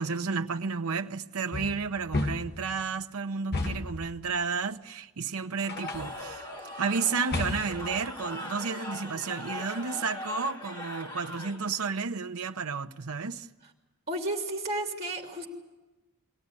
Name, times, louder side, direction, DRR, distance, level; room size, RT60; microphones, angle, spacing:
voice 1, 0.0-6.5 6.8-13.5, right 5 dB, 85° right, 0.9 m, -32 dB
sound 1, 1.5-2.7 3.5-4.1 5.7-6.2 7.3-7.9, left 2 dB, 45° left, 1.2 m, -32 dB
Cheering / Crowd, 5.6-11.9, left 1 dB, 20° left, 2.1 m, -40 dB
voice 2, 14.1-15.5, right 2 dB, 30° right, 2.8 m, -33 dB
23.0 x 17.5 x 9.7 m
head